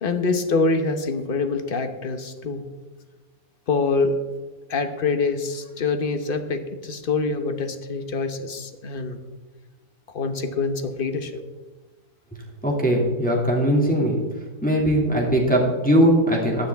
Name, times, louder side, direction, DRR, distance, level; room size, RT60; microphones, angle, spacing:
voice 1, 0.0-2.6 3.7-4.2 4.7-9.2 10.1-11.3, left 4 dB, 40° left, 7 dB, 1.0 m, -25 dB
voice 2, 12.6-14.2 14.6-16.7, equal, 5° left, -2 dB, 2.1 m, -20 dB
15.5 x 9.9 x 3.5 m, 1.3 s
omnidirectional pair, 1.8 m